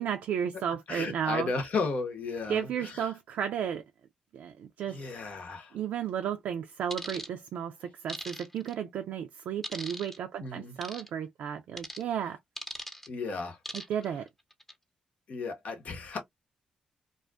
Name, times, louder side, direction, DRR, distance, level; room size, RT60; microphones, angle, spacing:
voice 1, 0.0-1.5 2.5-3.8 4.3-5.0 5.7-12.4 13.7-14.3, right 8 dB, 75° right, 0.3 m, -33 dB
voice 2, 0.9-3.1 4.9-5.8 10.4-10.8 13.1-13.6 14.1-14.2 15.3-16.2, left 4 dB, 60° left, 0.9 m, -34 dB
sound 1, 6.9-7.3 8.1-8.7 9.6-10.2 10.8-11.1 11.8-12.0 12.6-13.1 13.6-14.0 14.5-14.7, equal, 15° left, 0.9 m, -39 dB
2.4 x 2.3 x 2.3 m
supercardioid pair, 55°, 3 cm